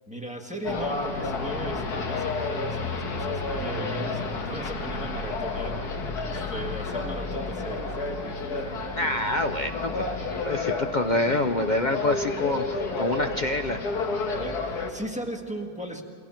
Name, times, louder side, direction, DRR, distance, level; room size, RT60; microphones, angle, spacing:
voice 1, 0.1-8.9 14.3-16.0, right 1 dB, 5° right, 2 dB, 1.5 m, -38 dB
sound 1, 0.6-14.9, left 3 dB, 85° left, 2.0 m, -31 dB
voice 2, 9.0-10.0 10.4-13.8, left 2 dB, 50° left, 6 dB, 0.5 m, -26 dB
28.0 x 23.0 x 4.4 m, 2.5 s
omnidirectional pair, 1.6 m